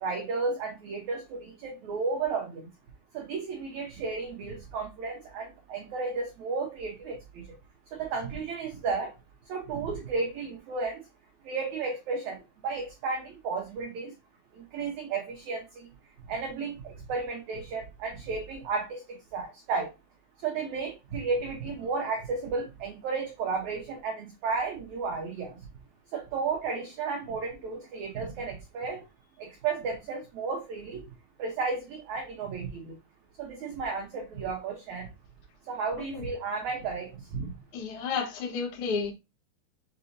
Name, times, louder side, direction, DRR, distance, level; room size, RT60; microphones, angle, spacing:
voice 1, 0.0-2.6 3.1-7.4 7.9-9.1 9.5-11.0 11.5-12.4 12.6-14.1 14.7-15.6 16.3-19.0 19.3-19.9 20.4-25.5 26.1-29.0 29.4-31.0 31.4-32.9 33.4-35.1 35.7-37.1 37.4-37.5, right 4 dB, 85° right, 2 dB, 1.6 m, -33 dB
voice 2, 37.7-39.1, left 5 dB, 80° left, 0 dB, 1.1 m, -31 dB
7.1 x 2.8 x 2.6 m, 0.25 s
omnidirectional pair, 4.6 m